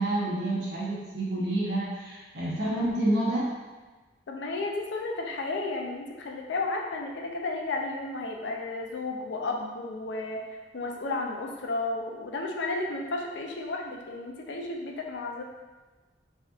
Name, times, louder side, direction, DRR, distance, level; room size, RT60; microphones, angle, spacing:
voice 1, 0.0-3.5, right 1 dB, 65° right, -7 dB, 1.1 m, -28 dB
voice 2, 4.3-10.4 10.7-15.4, left 2 dB, 80° left, 1 dB, 0.5 m, -33 dB
4.1 x 2.7 x 2.4 m, 1.3 s
head